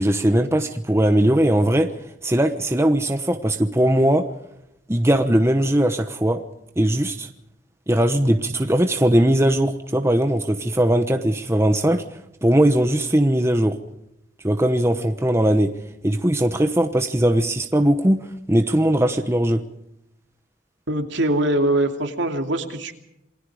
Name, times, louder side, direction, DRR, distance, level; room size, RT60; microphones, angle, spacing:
voice 1, 0.0-1.9 2.2-4.3 4.9-6.4 6.8-7.3 7.9-12.0 12.4-13.8 14.4-15.7 16.0-18.2 18.5-19.6, right 1 dB, 15° right, 6 dB, 1.0 m, -19 dB
voice 2, 20.9-22.9, right 1 dB, 65° right, 4 dB, 2.8 m, -22 dB
28.0 x 20.5 x 5.0 m, 0.82 s
head